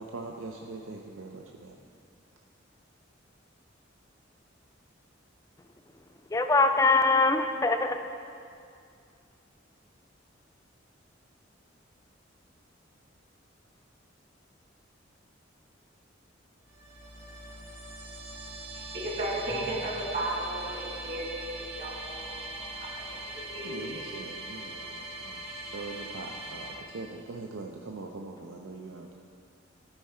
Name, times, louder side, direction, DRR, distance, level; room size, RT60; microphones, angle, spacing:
voice 1, 0.0-1.8 23.6-29.1, right 3 dB, 90° right, 1 dB, 0.6 m, -42 dB
voice 2, 6.3-8.0, left 3 dB, 15° left, 6 dB, 0.4 m, -23 dB
sound 1, 16.7-26.7, right 2 dB, 30° right, 1.2 m, -41 dB
voice 3, 18.7-22.9 23.3-24.1, right 1 dB, 50° right, -5 dB, 2.2 m, -35 dB
14.0 x 4.7 x 4.3 m, 2.4 s
head